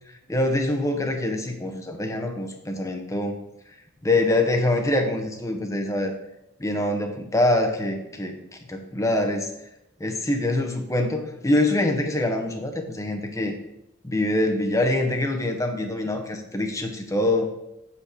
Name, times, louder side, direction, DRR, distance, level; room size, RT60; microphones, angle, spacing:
voice 1, 0.3-3.4 4.0-6.1 6.6-8.4 8.7-9.5 10.0-13.5 14.0-17.5, left 1 dB, 15° left, 4 dB, 0.7 m, -24 dB
5.8 x 4.8 x 5.7 m, 0.88 s
head